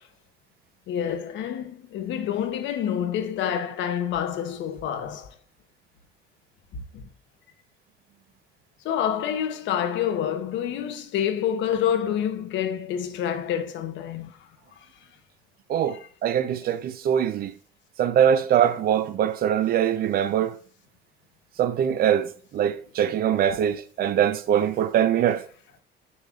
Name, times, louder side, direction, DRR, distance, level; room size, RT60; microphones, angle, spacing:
voice 1, 0.9-5.3 6.9-7.1 8.8-14.3 15.9-16.1, left 9 dB, 70° left, 1.0 m, -27 dB
voice 2, 15.7-17.5 18.0-20.5 21.6-25.4, right 9 dB, 50° right, 0.6 m, -23 dB
7.1 x 6.6 x 2.4 m
cardioid pair, 155°, 20 cm